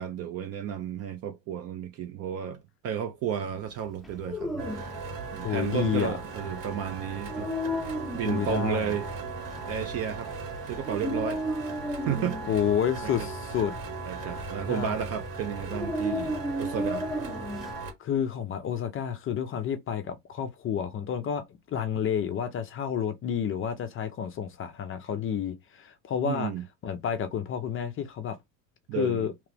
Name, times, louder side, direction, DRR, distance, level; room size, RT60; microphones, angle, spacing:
voice 1, 0.0-4.9 5.3-7.5 8.1-9.1 9.7-10.3 10.7-11.7 12.1-12.6 13.0-13.3 14.1-17.1 26.2-26.6 28.9-29.3, right 9 dB, 35° right, 0.4 m, -33 dB
Dog, 4.0-17.7, equal, ahead, 0.8 m, -35 dB
sound 1, 4.6-17.9, right 3 dB, 55° right, 1.6 m, -38 dB
voice 2, 5.4-6.1 8.3-8.9 12.5-13.7 14.7-14.9 18.0-26.5 26.8-28.4 29.0-29.3, left 8 dB, 25° left, 0.5 m, -30 dB
3.0 x 2.4 x 3.2 m
hypercardioid pair, 100°, 49 cm